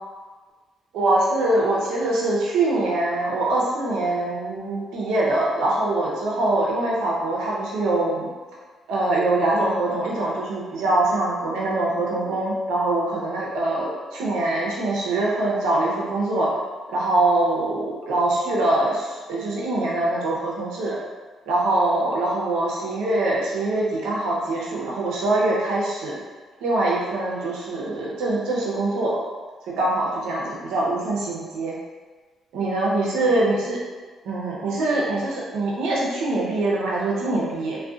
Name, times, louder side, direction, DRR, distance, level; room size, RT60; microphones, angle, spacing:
voice 1, 0.9-8.3 8.9-16.5 16.9-21.0 21.5-26.2 26.6-29.2 29.8-31.8 32.5-33.8 34.2-37.8, right 2 dB, 90° right, -4 dB, 0.5 m, -23 dB
2.5 x 2.1 x 2.3 m, 1.4 s
cardioid pair, 90°, 0 cm